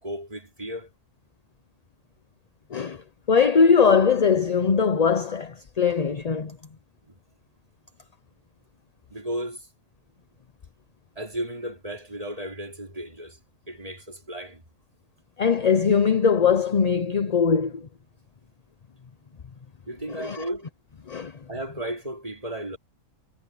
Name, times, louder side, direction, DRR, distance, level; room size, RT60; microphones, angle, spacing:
voice 1, 0.0-0.9 7.1-7.2 9.1-9.7 11.2-13.4 13.7-14.6 19.9-20.7 21.5-22.8, right 1 dB, 25° right, 5.0 m, -34 dB
voice 2, 2.7-6.6 15.4-17.9 20.2-20.4 21.1-21.3, left 6 dB, 35° left, 0.7 m, -21 dB
omnidirectional pair, 1.4 m